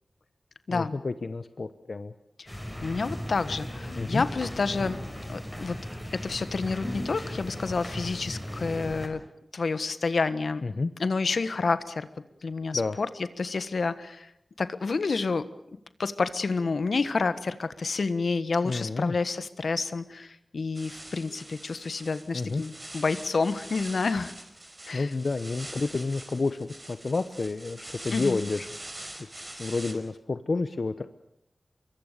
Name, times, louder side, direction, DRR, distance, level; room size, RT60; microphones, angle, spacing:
voice 1, 0.7-2.1 4.0-4.2 10.6-10.9 12.7-13.0 18.6-19.1 22.3-22.6 24.9-28.7 29.2-29.3 29.6-31.1, left 3 dB, 60° left, 11 dB, 1.0 m, -30 dB
sound 1, 2.5-9.1, equal, 10° left, 6.1 m, -37 dB
voice 2, 2.8-5.0 5.3-5.8 6.1-9.2 9.5-10.6 11.0-12.1 12.4-13.1 13.4-14.3 14.6-15.5 16.0-24.3 24.9-25.1 28.1-28.4, left 4 dB, 75° left, 12 dB, 1.4 m, -29 dB
sound 2, 20.7-29.9, right 1 dB, 25° right, 5.0 m, -44 dB
25.0 x 23.5 x 6.8 m, 0.80 s
wide cardioid pair, 70°, 0 cm